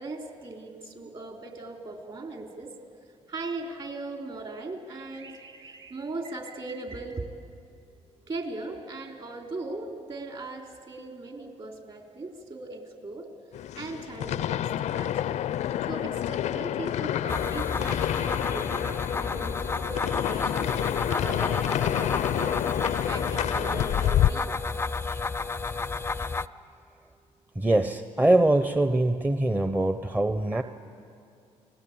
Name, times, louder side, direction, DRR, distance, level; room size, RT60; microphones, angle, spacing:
voice 1, 0.0-2.7 3.3-7.3 8.3-13.3 13.8-15.4 15.9-20.7 21.1-22.6 23.1-24.7, right 2 dB, 40° right, 3 dB, 3.7 m, -39 dB
sound 1, 13.5-24.3, left 11 dB, 70° left, 0.5 m, -28 dB
sound 2, 17.3-26.5, left 4 dB, 20° left, 0.6 m, -31 dB
voice 2, 27.5-30.6, right 2 dB, 15° right, 8 dB, 0.8 m, -23 dB
29.5 x 20.0 x 8.8 m, 2.5 s
cardioid pair, 95°, 12 cm